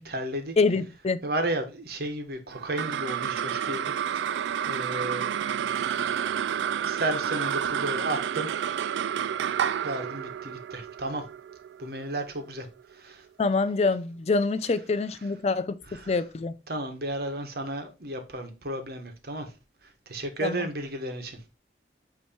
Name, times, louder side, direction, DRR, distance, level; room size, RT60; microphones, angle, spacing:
voice 1, 0.0-0.5 1.2-4.3 4.6-5.3 6.8-8.5 9.8-11.2 11.8-12.7 13.0-13.2 15.9-16.2 16.7-19.5 20.1-21.4, right 1 dB, 60° right, 1.3 m, -33 dB
voice 2, 0.6-1.2 13.4-15.8 16.1-16.5 20.4-20.6, left 3 dB, 35° left, 0.4 m, -25 dB
sound 1, 2.5-13.1, right 9 dB, 85° right, 0.3 m, -30 dB
8.8 x 3.1 x 4.2 m
head